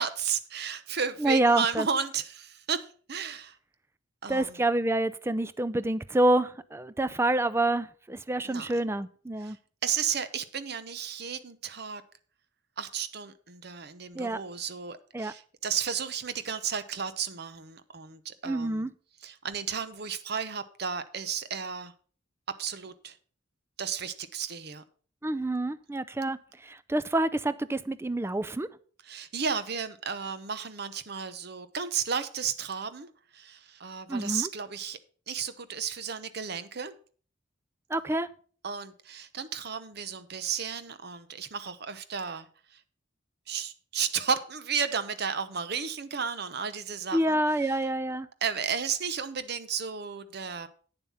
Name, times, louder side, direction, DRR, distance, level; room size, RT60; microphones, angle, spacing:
voice 1, 0.0-3.6 4.2-4.6 8.4-8.7 9.4-9.6 9.8-12.0 12.8-18.9 19.2-21.9 22.6-23.2 23.8-24.8 29.1-35.0 35.3-36.9 38.6-42.8 43.5-47.8 48.4-50.7, right 6 dB, 55° right, 0.8 m, -33 dB
voice 2, 1.2-1.9 4.3-9.6 14.1-14.4 15.1-15.3 18.4-18.9 25.2-28.7 34.1-34.5 37.9-38.3 47.1-48.3, right 1 dB, 15° right, 0.4 m, -27 dB
8.9 x 7.3 x 5.6 m
head